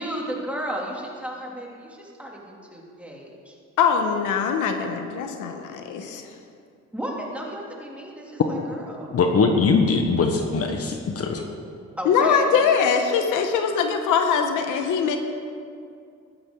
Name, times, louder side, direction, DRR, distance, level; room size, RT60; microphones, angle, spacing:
voice 1, 0.0-3.6 6.9-9.1 12.0-12.5, right 1 dB, 5° right, -3 dB, 2.8 m, -34 dB
voice 2, 3.8-6.3 12.0-15.2, left 6 dB, 85° left, 5 dB, 1.1 m, -22 dB
voice 3, 9.1-11.4, left 4 dB, 50° left, 4 dB, 1.2 m, -21 dB
15.0 x 12.5 x 3.9 m, 2.3 s
cardioid pair, 90°, 30 cm